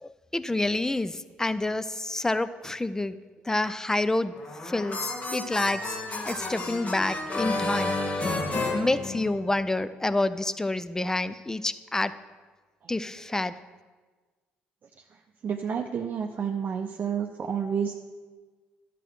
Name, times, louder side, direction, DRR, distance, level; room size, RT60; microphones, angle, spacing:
voice 1, 0.0-3.2 3.5-4.3 4.6-5.8 6.2-8.3 8.7-12.2 12.9-13.6, left 2 dB, 10° left, 15 dB, 0.4 m, -28 dB
sound 1, 4.3-9.7, left 2 dB, 35° left, 1.4 m, -31 dB
voice 2, 15.4-18.0, right 7 dB, 45° right, 2 dB, 0.6 m, -30 dB
11.5 x 7.5 x 3.9 m, 1.4 s
hypercardioid pair, 60°, 4 cm